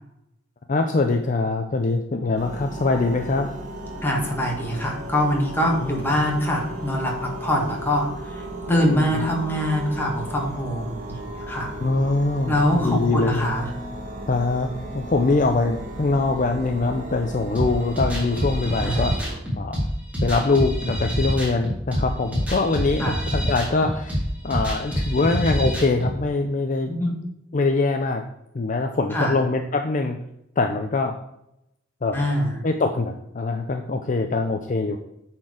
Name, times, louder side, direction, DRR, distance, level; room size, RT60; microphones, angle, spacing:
voice 1, 0.7-3.5 5.8-6.0 8.7-9.3 11.8-13.5 14.3-14.7 14.9-19.2 19.6-19.8 20.2-26.9 27.5-28.2 28.5-30.2 30.6-31.2 32.0-32.2 32.6-35.0, left 3 dB, 45° left, 5 dB, 0.5 m, -23 dB
sound 1, 2.4-19.4, right 1 dB, 40° right, 1.5 m, -35 dB
voice 2, 4.0-8.1 8.3-8.4 8.7-11.7 12.5-13.7 18.8-19.0 23.0-23.2 26.9-27.1 29.1-29.4 32.1-32.6, left 1 dB, 10° left, -1 dB, 1.9 m, -24 dB
sound 2, 17.5-26.1, equal, 10° right, 2.8 m, -26 dB
9.5 x 4.5 x 4.9 m, 0.81 s
head